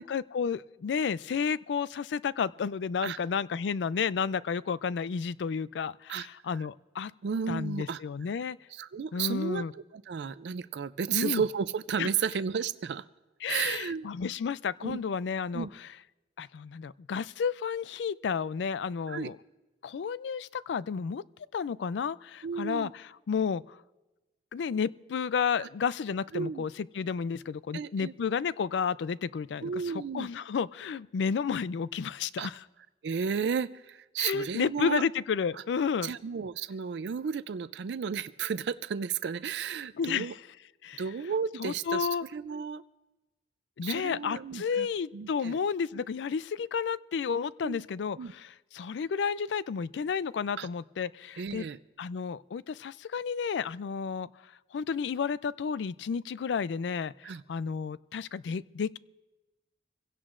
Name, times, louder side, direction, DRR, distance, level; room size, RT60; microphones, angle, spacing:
voice 1, 0.0-7.1 7.5-8.6 9.1-9.7 11.1-11.4 12.0-12.1 13.4-15.9 16.4-19.4 19.8-21.2 21.5-23.8 24.5-32.6 34.2-36.1 40.0-40.4 40.8-41.0 41.6-42.3 43.8-51.7 52.0-54.3 54.7-59.0, left 6 dB, 90° left, 18 dB, 0.4 m, -32 dB
voice 2, 7.2-8.0 8.7-9.6 9.9-13.0 13.5-14.1 14.8-15.0 15.5-15.7 19.1-19.3 22.4-22.9 25.6-25.7 26.3-26.7 27.7-28.1 29.6-30.3 32.4-32.5 33.0-35.0 35.6-35.7 36.0-40.3 41.0-42.8 43.8-44.9 45.1-45.6 46.0-46.1 47.6-47.8 48.2-48.3 50.6-50.7 51.4-51.8 57.2-57.4, right 6 dB, 75° right, 14 dB, 0.4 m, -33 dB
27.0 x 16.5 x 2.5 m, 1.1 s
head